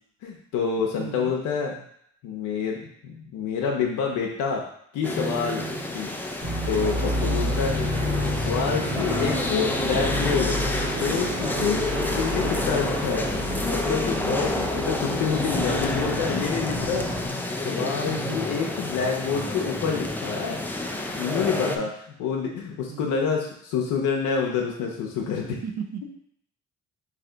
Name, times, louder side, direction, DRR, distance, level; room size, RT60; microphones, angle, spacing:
voice 1, 0.2-1.7 2.2-4.6 4.9-5.7 5.9-6.1 6.4-7.7 8.4-10.6 11.0-11.8 12.2-17.0 17.3-20.6 21.1-21.9 22.2-25.6, left 6 dB, 90° left, -1 dB, 0.6 m, -27 dB
voice 2, 0.8-1.3 5.6-5.9 6.6-7.4 11.6-11.9 12.8-13.1 14.2-14.5 18.0-18.4 21.5-21.9 22.9-23.1 25.5-26.0, right 7 dB, 60° right, 5 dB, 0.6 m, -37 dB
sound 1, 5.0-21.8, left 2 dB, 5° left, 0.3 m, -29 dB
sound 2, 6.4-17.3, equal, 20° right, 1.5 m, -29 dB
3.3 x 2.7 x 3.8 m, 0.68 s
cardioid pair, 90°, 30 cm